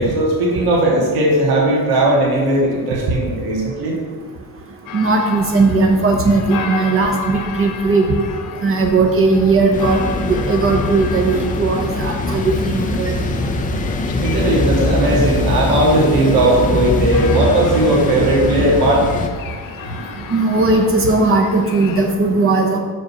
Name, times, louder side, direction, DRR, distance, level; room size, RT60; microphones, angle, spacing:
voice 1, 0.0-4.0 14.2-19.0, right 1 dB, 70° right, -3 dB, 1.7 m, -17 dB
sound 1, 4.9-22.1, left 7 dB, 60° left, 0.7 m, -34 dB
voice 2, 4.9-8.1 8.6-13.2 20.3-22.8, right 3 dB, 35° right, 1 dB, 0.8 m, -17 dB
sound 2, 9.7-19.3, left 2 dB, 20° left, 0.5 m, -22 dB
5.8 x 5.1 x 5.4 m, 1.5 s
cardioid pair, 150°, 38 cm